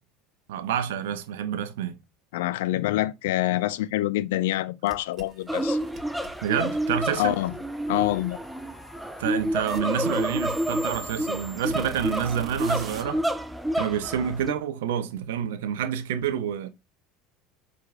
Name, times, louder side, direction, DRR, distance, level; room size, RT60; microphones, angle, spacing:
voice 1, 0.5-2.0 6.4-7.4 9.2-13.2 13.8-16.7, right 9 dB, 70° right, 0.6 m, -28 dB
voice 2, 2.3-5.8 7.2-7.5 7.9-8.4, left 16 dB, 70° left, 0.3 m, -26 dB
sound 1, 4.9-13.0, right 3 dB, 35° right, 0.9 m, -44 dB
sound 2, 5.5-14.5, equal, 5° right, 0.5 m, -29 dB
4.6 x 3.8 x 2.4 m
hypercardioid pair, 70°, 0 cm